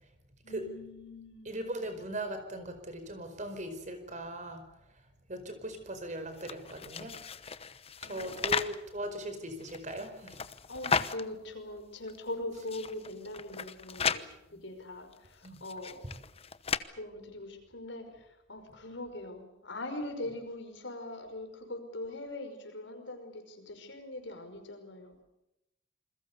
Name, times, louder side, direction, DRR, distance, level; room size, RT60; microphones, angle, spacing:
voice 1, 0.4-1.7 8.0-8.7 10.7-16.1 16.9-25.2, left 1 dB, 80° left, 6 dB, 5.5 m, -42 dB
voice 2, 1.4-4.7 5.3-7.2 8.0-10.4 14.5-14.6 15.4-15.6, right 1 dB, 40° right, 8 dB, 4.7 m, -39 dB
sound 1, 6.3-8.8 9.5-11.2 11.8-11.9 12.1-12.2 12.5-14.2 15.1-16.8, left 6 dB, 30° left, 0.9 m, -35 dB
28.0 x 21.5 x 6.9 m, 0.88 s
head